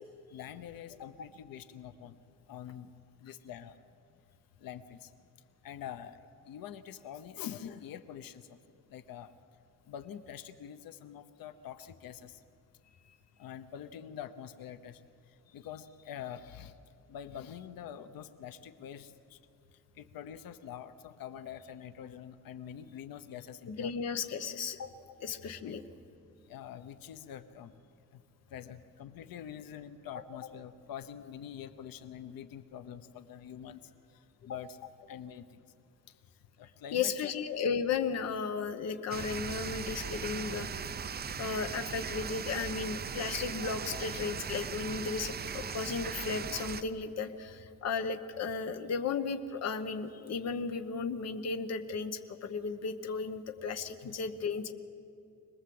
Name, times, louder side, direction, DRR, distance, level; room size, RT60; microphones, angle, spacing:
voice 1, 0.3-2.2 2.5-2.9 3.2-3.8 4.6-5.1 5.6-6.2 6.5-8.6 8.9-9.3 9.9-12.4 13.4-15.0 15.3-16.8 17.1-19.4 19.7-23.9 25.1-25.2 25.6-25.8 26.5-27.7 28.1-28.2 28.5-35.6 36.1-37.3 54.0-54.2, left 9 dB, 80° left, 11 dB, 1.0 m, -45 dB
voice 2, 23.7-24.9 25.2-25.8 30.1-30.2 34.5-34.6 36.9-40.9 41.4-54.7, left 5 dB, 50° left, 8 dB, 1.1 m, -35 dB
sound 1, 39.1-46.8, right 6 dB, 30° right, 0.6 m, -38 dB
25.5 x 20.5 x 7.8 m, 2.6 s
cardioid pair, 180°, 34 cm